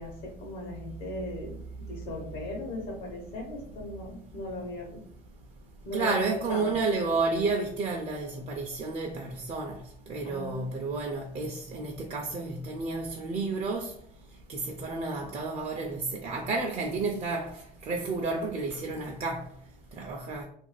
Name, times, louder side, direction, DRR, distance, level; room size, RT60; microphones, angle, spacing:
voice 1, 0.0-5.0 5.8-6.2 6.5-6.8 10.2-10.9, left 1 dB, 85° left, 0.9 m, -38 dB
voice 2, 5.9-9.8 10.1-13.9 14.5-19.5 20.0-20.5, right 3 dB, 45° right, 0.4 m, -31 dB
2.5 x 2.3 x 3.1 m
cardioid pair, 110°, 16 cm